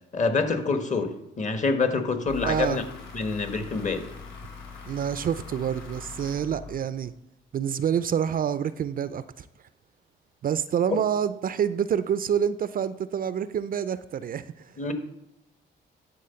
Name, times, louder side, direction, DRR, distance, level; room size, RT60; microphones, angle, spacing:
voice 1, 0.1-1.1 1.4-2.8 3.1-4.1 14.8-14.9, left 4 dB, 40° left, 1.3 m, -26 dB
sound 1, 2.3-7.2, left 5 dB, 70° left, 3.4 m, -42 dB
voice 2, 2.4-2.8 4.9-7.1 7.5-9.5 10.4-14.7, right 8 dB, 45° right, 0.4 m, -27 dB
11.0 x 3.7 x 6.8 m
cardioid pair, 90°, 20 cm